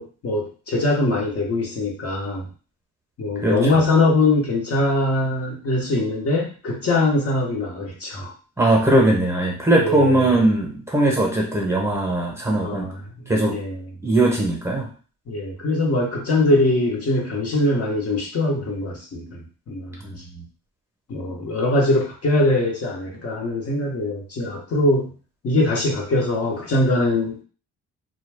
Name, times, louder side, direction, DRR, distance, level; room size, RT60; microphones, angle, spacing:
voice 1, 0.0-2.4 3.2-8.3 9.8-10.5 12.6-13.0 13.4-13.8 15.3-20.0 21.1-25.1 25.4-27.4, left 2 dB, 50° left, -1 dB, 1.0 m, -22 dB
voice 2, 8.6-12.9 13.3-13.6 14.0-14.9 20.0-20.4, right 2 dB, 10° right, -2 dB, 0.9 m, -20 dB
2.3 x 2.2 x 3.3 m, 0.38 s
cardioid pair, 90°, 30 cm